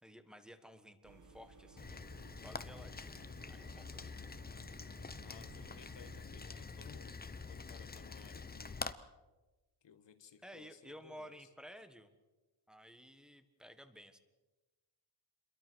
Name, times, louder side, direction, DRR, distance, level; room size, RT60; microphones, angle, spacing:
voice 1, 0.0-3.1 3.5-4.1 10.4-12.1 12.7-14.2, equal, ahead, 9 dB, 1.6 m, -54 dB
sound 1, 1.0-6.2, right 4 dB, 40° right, 1.9 m, -59 dB
Rain, 1.8-8.9, left 4 dB, 20° left, 0.9 m, -46 dB
voice 2, 5.2-7.2 7.5-8.8 9.8-11.5, left 7 dB, 60° left, 11 dB, 1.8 m, -58 dB
28.5 x 22.5 x 6.4 m, 1.2 s
wide cardioid pair, 165°, 47 cm